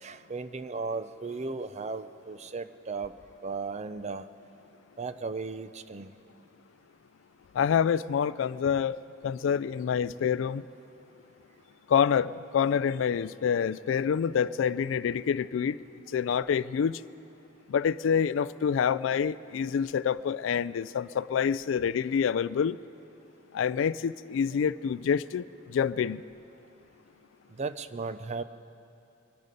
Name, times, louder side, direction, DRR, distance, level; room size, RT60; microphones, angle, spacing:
voice 1, 0.0-3.1 3.4-4.2 5.0-6.1 27.6-28.4, right 4 dB, 35° right, 0.5 m, -35 dB
voice 2, 7.5-9.0 9.2-10.7 11.9-15.8 16.1-17.0 17.7-22.8 23.5-26.2, left 7 dB, 75° left, 0.3 m, -27 dB
24.5 x 10.5 x 5.2 m
head